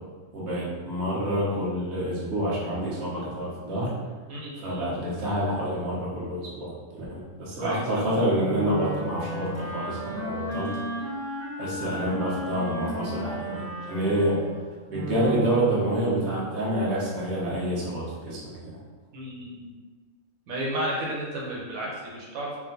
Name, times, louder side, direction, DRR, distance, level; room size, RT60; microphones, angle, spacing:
voice 1, 0.3-4.0 4.6-10.7 11.6-13.6 13.9-14.4 14.9-18.8, right 1 dB, 55° right, -6 dB, 1.3 m, -28 dB
voice 2, 4.3-4.9 7.6-8.1 19.1-19.7 20.5-22.6, right 1 dB, 90° right, -4 dB, 1.3 m, -33 dB
Wind instrument woodwind instrument, 8.4-15.8, right 1 dB, 10° left, 1.1 m, -34 dB
3.7 x 2.5 x 3.8 m, 1.4 s
omnidirectional pair, 1.4 m